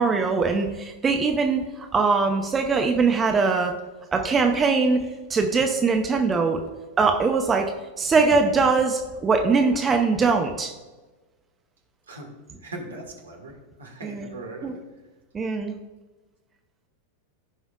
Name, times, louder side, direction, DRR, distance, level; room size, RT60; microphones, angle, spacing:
voice 1, 0.0-1.6 1.9-3.7 4.1-6.6 7.0-7.7 8.0-10.7 14.0-14.3 14.6-14.7 15.3-15.7, right 4 dB, 20° right, 4 dB, 0.7 m, -21 dB
voice 2, 12.6-14.8, right 2 dB, 70° right, 2 dB, 1.8 m, -39 dB
16.0 x 5.4 x 2.4 m, 1.2 s
figure-of-eight pair, 90°, 0 cm